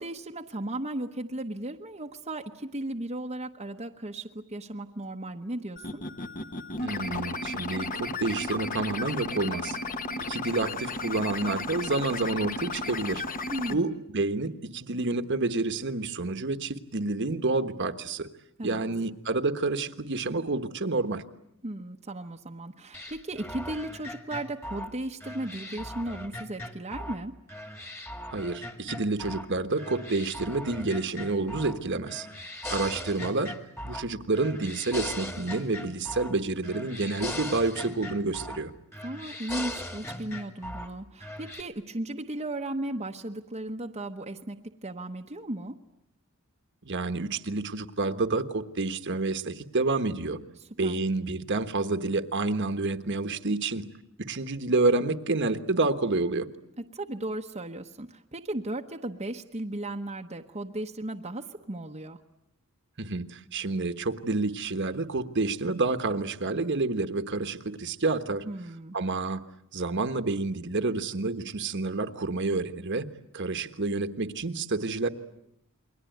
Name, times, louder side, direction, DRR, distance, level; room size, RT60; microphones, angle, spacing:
voice 1, 0.0-6.0 13.5-14.0 18.6-18.8 21.6-27.3 39.0-45.8 50.6-51.0 56.8-62.2 68.4-69.0, right 1 dB, 30° right, 3 dB, 1.0 m, -36 dB
sound 1, 5.8-13.7, left 3 dB, 40° left, 1.2 m, -34 dB
voice 2, 6.8-9.8 10.3-13.2 13.7-18.3 18.6-21.2 28.3-32.3 32.7-33.5 33.8-38.7 46.8-50.4 50.8-53.9 54.2-56.5 63.0-68.4 68.9-69.4 69.7-73.1 73.3-75.1, right 3 dB, 55° right, 9 dB, 1.4 m, -29 dB
sound 2, 22.9-27.2 27.5-29.5 29.8-31.8 32.1-34.1 34.3-36.4 36.6-38.6 38.9-40.9 41.2-41.6, left 1 dB, 10° left, 1.8 m, -39 dB
29.0 x 22.5 x 9.3 m, 0.79 s
head